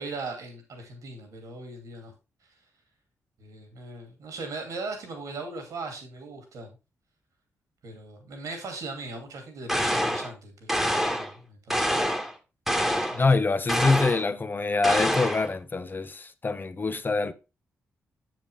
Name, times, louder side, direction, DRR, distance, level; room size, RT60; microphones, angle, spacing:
voice 1, 0.0-2.1 3.4-6.7 7.8-12.0 12.9-13.2, right 3 dB, 75° right, 2.6 m, -39 dB
sound 1, 9.7-10.3 10.7-11.3 11.7-12.3 12.7-13.2 13.7-14.3 14.8-15.5, equal, 5° right, 1.5 m, -26 dB
voice 2, 13.2-17.3, left 3 dB, 35° left, 0.8 m, -25 dB
7.5 x 7.0 x 3.4 m
supercardioid pair, 45°, 6 cm